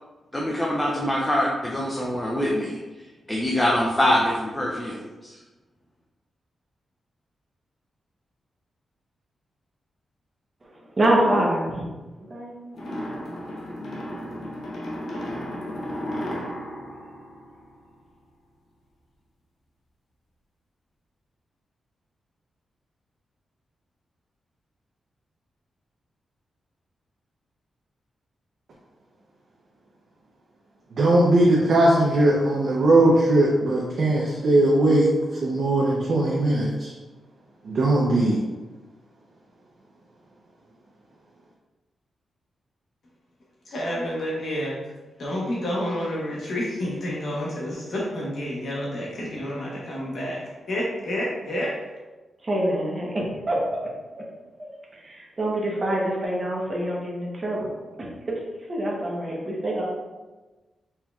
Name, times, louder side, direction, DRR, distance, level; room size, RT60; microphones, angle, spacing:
voice 1, 0.3-2.8 3.3-5.4, left 1 dB, 10° left, -3 dB, 0.4 m, -24 dB
voice 2, 11.0-11.8 12.2-12.5 52.4-53.6 55.0-57.7 58.0-58.4 58.7-59.8, right 1 dB, 30° right, -3 dB, 0.9 m, -25 dB
sound 1, 12.7-18.1, equal, 80° left, 0.7 m, -34 dB
voice 3, 30.9-36.9 37.6-38.4, right 1 dB, 60° right, -4 dB, 0.6 m, -19 dB
voice 4, 43.6-44.8 45.2-51.7, equal, 55° left, -5 dB, 1.0 m, -29 dB
4.3 x 3.5 x 2.3 m, 1.2 s
wide cardioid pair, 145°, 0 cm